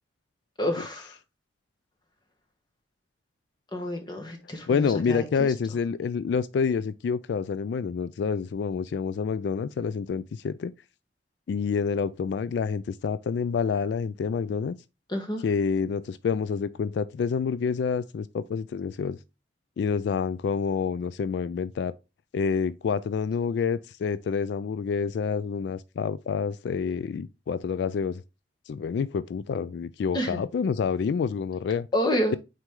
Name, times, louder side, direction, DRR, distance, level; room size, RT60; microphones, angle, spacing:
voice 1, 0.6-1.1 3.7-5.5 15.1-15.4 30.1-30.4 31.9-32.4, equal, 25° left, 1.3 m, -29 dB
voice 2, 4.7-10.7 11.5-14.8 15.4-19.2 19.8-21.9 22.3-28.2 28.7-31.9 32.3-32.4, left 6 dB, 70° left, 0.3 m, -28 dB
6.0 x 4.4 x 3.7 m
head